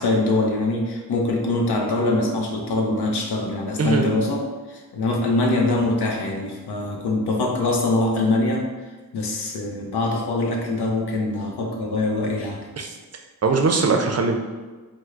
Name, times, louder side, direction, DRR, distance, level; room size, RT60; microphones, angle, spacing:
voice 1, 0.0-8.7 9.1-12.7, left 2 dB, 90° left, 1 dB, 0.6 m, -23 dB
voice 2, 13.4-14.4, right 4 dB, 40° right, 3 dB, 0.4 m, -20 dB
4.4 x 2.0 x 2.4 m, 1.3 s
wide cardioid pair, 55°, 39 cm